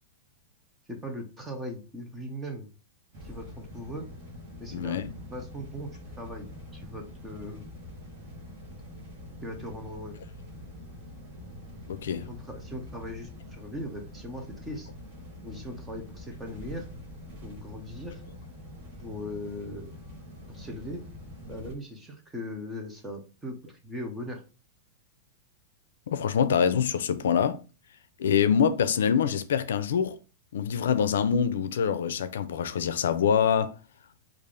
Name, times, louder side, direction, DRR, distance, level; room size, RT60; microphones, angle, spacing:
voice 1, 0.9-2.7 3.2-4.1 4.6-5.0 5.3-5.9 6.2-7.7 9.4-10.2 12.3-14.9 15.4-16.9 17.4-18.2 19.0-19.9 20.5-21.0 21.5-24.4, equal, 5° right, 0.6 m, -39 dB
sound 1, 3.1-21.7, left 1 dB, 30° right, 1.0 m, -45 dB
voice 2, 4.7-5.1 11.9-12.3 26.1-27.6 28.2-30.2 30.5-33.7, left 7 dB, 85° left, 0.4 m, -25 dB
3.3 x 2.4 x 3.7 m
supercardioid pair, 170°, 0 cm